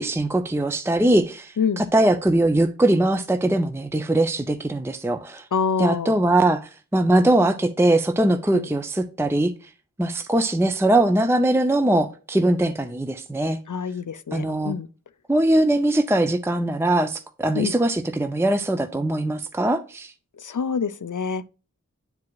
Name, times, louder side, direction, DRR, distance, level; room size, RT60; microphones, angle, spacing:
voice 1, 0.0-5.5 5.8-9.5 10.0-13.6 14.3-14.7 15.3-20.1, right 1 dB, 10° right, 0.5 m, -21 dB
voice 2, 1.6-1.9 5.5-6.2 8.5-8.7 13.7-14.9 17.5-17.7 20.4-21.5, left 6 dB, 65° left, 0.5 m, -26 dB
10.5 x 4.8 x 2.3 m
wide cardioid pair, 40°, 33 cm